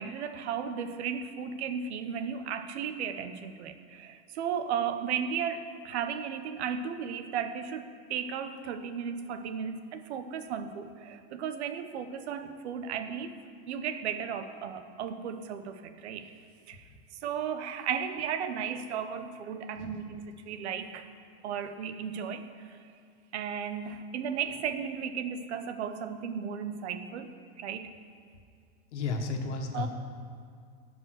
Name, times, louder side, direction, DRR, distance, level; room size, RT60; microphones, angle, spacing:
voice 1, 0.0-13.3 13.7-16.3 16.7-16.9 17.2-21.1 21.4-22.9 23.3-27.3 27.6-27.9 29.7-29.9, right 7 dB, 75° right, 9 dB, 1.0 m, -35 dB
voice 2, 28.9-29.9, left 4 dB, 90° left, 3 dB, 1.6 m, -33 dB
15.0 x 5.4 x 6.4 m, 2.3 s
supercardioid pair, 150°, 34 cm